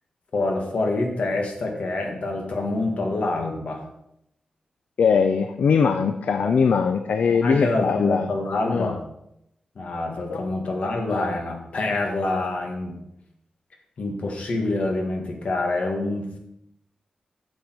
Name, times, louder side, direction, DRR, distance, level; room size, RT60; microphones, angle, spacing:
voice 1, 0.3-3.8 6.4-6.5 7.3-9.0 9.8-13.0 14.0-16.4, left 2 dB, 60° left, 2 dB, 1.8 m, -26 dB
voice 2, 5.0-8.3 8.7-8.9 10.3-10.4, left 6 dB, 80° left, 8 dB, 0.5 m, -21 dB
9.4 x 6.9 x 4.6 m, 0.80 s
wide cardioid pair, 175°, 2 cm